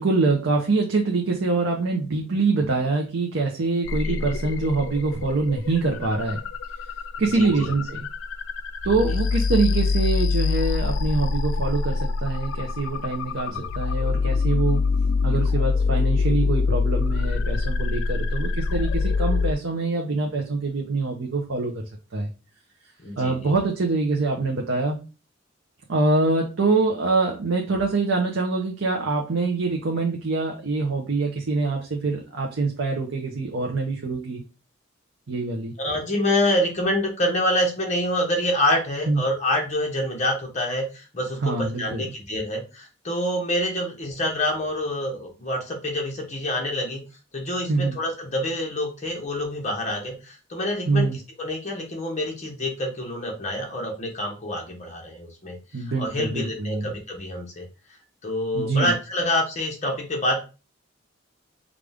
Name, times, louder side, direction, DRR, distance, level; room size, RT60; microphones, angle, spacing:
voice 1, 0.0-6.4 7.2-8.1 8.8-14.8 15.2-22.3 23.2-25.0 25.9-34.4 35.3-35.7 39.1-39.2 41.4-42.0 47.7-48.0 50.9-51.2 55.7-56.9 58.5-58.9, right 3 dB, 85° right, 1 dB, 0.8 m, -24 dB
sound 1, 3.8-19.5, left 4 dB, 75° left, 0.3 m, -25 dB
voice 2, 7.2-7.7 9.1-9.2 13.5-13.7 23.0-23.5 35.8-47.0 47.3-51.1 51.4-55.6 56.0-57.7 58.2-60.4, left 1 dB, 35° left, 0 dB, 1.2 m, -27 dB
5.0 x 2.4 x 3.5 m, 0.32 s
head